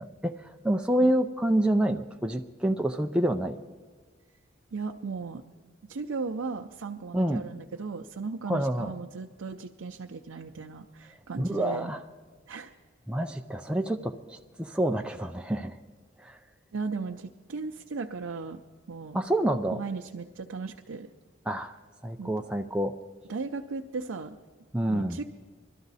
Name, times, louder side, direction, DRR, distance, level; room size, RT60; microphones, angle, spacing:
voice 1, 0.0-3.6 7.1-7.5 8.5-8.9 11.4-12.0 13.1-15.8 16.2-16.4 19.1-19.8 21.5-21.7 22.0-23.0 24.7-25.2, right 1 dB, 5° right, 4 dB, 0.3 m, -28 dB
voice 2, 4.7-5.4 5.9-11.9 12.5-12.7 16.7-18.6 18.9-19.2 19.7-21.1 22.2-22.3 23.3-24.4 24.9-25.2, right 4 dB, 85° right, 3 dB, 0.5 m, -36 dB
20.5 x 12.5 x 4.1 m, 1.4 s
head